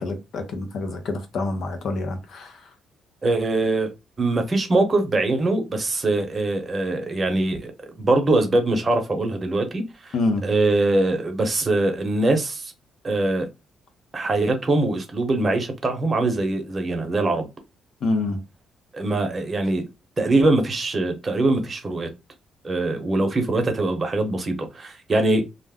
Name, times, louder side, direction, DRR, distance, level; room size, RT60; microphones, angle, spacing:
voice 1, 0.0-2.6 10.1-10.5 18.0-18.4, left 2 dB, 65° left, 0.8 m, -26 dB
voice 2, 3.2-3.9 4.2-10.1 10.4-12.7 13.0-13.5 14.1-17.5 18.9-19.9 20.2-22.1 22.6-25.4, right 2 dB, 30° right, 0.8 m, -22 dB
2.4 x 2.1 x 3.5 m
cardioid pair, 90°, 0 cm